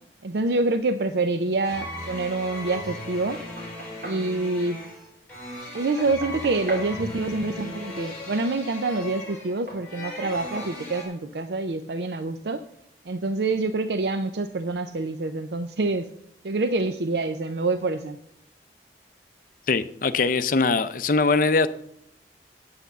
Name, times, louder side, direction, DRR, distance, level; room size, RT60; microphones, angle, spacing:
voice 1, 0.2-3.4 4.0-4.8 5.7-12.6 13.1-16.1 16.4-18.2, right 3 dB, 70° right, 10 dB, 0.5 m, -26 dB
sound 1, 1.6-11.0, left 1 dB, 10° left, 5.0 m, -37 dB
Knock, 3.1-4.3 5.7-6.9 8.9-9.1 9.7-9.9 10.6-10.8, right 1 dB, 55° right, 2.9 m, -39 dB
voice 2, 19.7-21.7, left 4 dB, 50° left, 12 dB, 0.6 m, -22 dB
8.7 x 8.3 x 6.7 m, 0.74 s
head